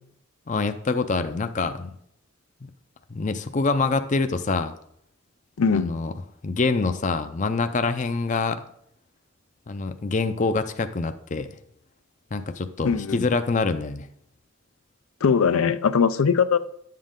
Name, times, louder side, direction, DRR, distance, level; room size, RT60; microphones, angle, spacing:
voice 1, 0.5-2.0 3.1-4.7 5.7-6.1 6.4-8.6 9.7-11.5 12.3-14.1, left 3 dB, 35° left, 0.5 m, -25 dB
voice 2, 5.6-5.9 12.8-13.3 15.2-16.6, left 6 dB, 85° left, 0.5 m, -21 dB
11.0 x 7.5 x 3.7 m
head